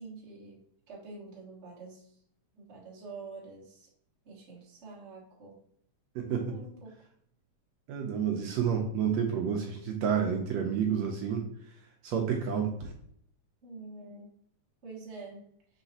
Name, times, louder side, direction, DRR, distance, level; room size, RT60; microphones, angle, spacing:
voice 1, 0.0-2.1 2.5-3.9 4.2-5.6 6.2-7.0 13.6-14.3 14.8-15.5, right 3 dB, 50° right, -4 dB, 0.8 m, -47 dB
voice 2, 6.2-6.5 7.9-11.4 12.0-12.7, right 7 dB, 80° right, 2 dB, 1.6 m, -29 dB
5.5 x 3.0 x 2.7 m, 0.67 s
omnidirectional pair, 3.4 m